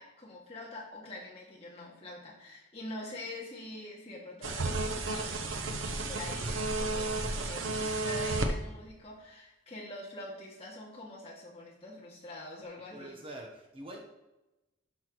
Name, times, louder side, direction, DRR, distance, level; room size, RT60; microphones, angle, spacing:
voice 1, 0.0-5.4 6.1-13.1, left 1 dB, 30° left, -5 dB, 2.2 m, -45 dB
sound 1, 4.4-8.5, right 2 dB, 80° right, 0.9 m, -32 dB
voice 2, 12.8-14.0, right 1 dB, 25° right, 0 dB, 1.0 m, -45 dB
12.0 x 6.0 x 3.1 m, 1.0 s
head